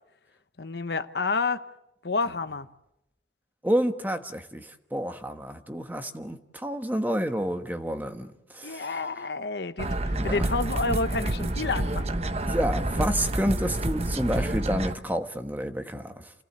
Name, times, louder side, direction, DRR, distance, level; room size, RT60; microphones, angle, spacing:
voice 1, 0.6-1.6 2.0-2.7 8.6-12.1, left 3 dB, 65° left, 0.9 m, -29 dB
voice 2, 3.6-9.0 10.1-10.5 12.5-16.3, equal, 10° right, 1.2 m, -29 dB
sound 1, 9.8-14.9, right 1 dB, 35° right, 1.0 m, -28 dB
28.5 x 17.5 x 8.0 m
head